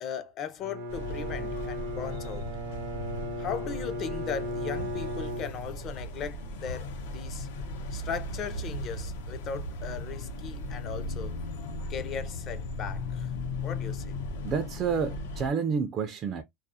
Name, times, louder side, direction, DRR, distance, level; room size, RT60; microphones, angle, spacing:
voice 1, 0.0-2.5 3.4-7.5 7.9-11.4 11.9-13.3 13.6-14.3, left 7 dB, 35° left, 0.5 m, -38 dB
Bowed string instrument, 0.6-6.1, equal, 75° right, 0.7 m, -36 dB
sound 1, 0.9-15.5, left 2 dB, 90° left, 0.7 m, -37 dB
voice 2, 14.4-16.4, right 6 dB, 35° right, 0.3 m, -29 dB
2.3 x 2.0 x 2.6 m
supercardioid pair, 145°, 0 cm